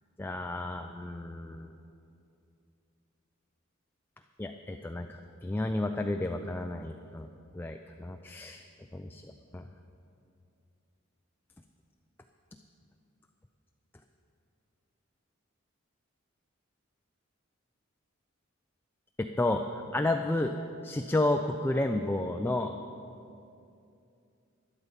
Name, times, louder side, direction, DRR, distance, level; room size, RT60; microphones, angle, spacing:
voice 1, 0.2-1.7 4.4-7.3 7.5-8.6 8.9-9.2 9.5-9.6 19.2-20.5 20.8-22.7, left 2 dB, 10° left, 5 dB, 0.4 m, -31 dB
12.5 x 11.0 x 5.2 m, 2.6 s
head